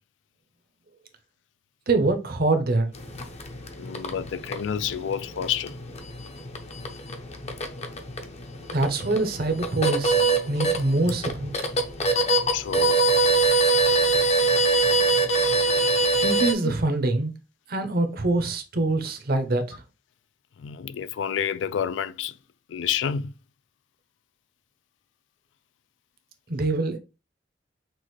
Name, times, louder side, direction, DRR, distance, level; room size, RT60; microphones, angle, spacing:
voice 1, 1.9-2.9 8.7-11.5 16.2-17.3 17.7-19.8 26.5-27.0, right 2 dB, 55° right, 0.8 m, -24 dB
sound 1, 2.9-16.5, right 3 dB, 35° left, 0.6 m, -24 dB
voice 2, 3.8-5.8 12.5-13.0 16.6-16.7 20.6-22.4 22.7-23.3, left 8 dB, 80° left, 0.4 m, -29 dB
6.1 x 2.5 x 3.1 m
head